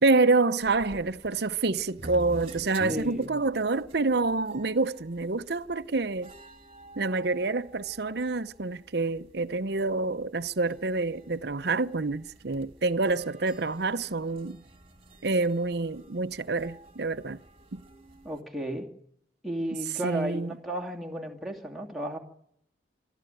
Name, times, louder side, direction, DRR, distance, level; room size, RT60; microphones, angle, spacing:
voice 1, 0.0-6.3 7.0-14.6 15.2-17.4 17.7-17.8 20.0-20.5, right 3 dB, 55° right, 0.8 m, -27 dB
sound 1, 0.6-18.4, right 1 dB, 30° right, 2.2 m, -49 dB
voice 2, 2.9-3.3 18.2-18.9 19.4-22.2, right 1 dB, ahead, 2.7 m, -33 dB
26.0 x 13.5 x 9.2 m
head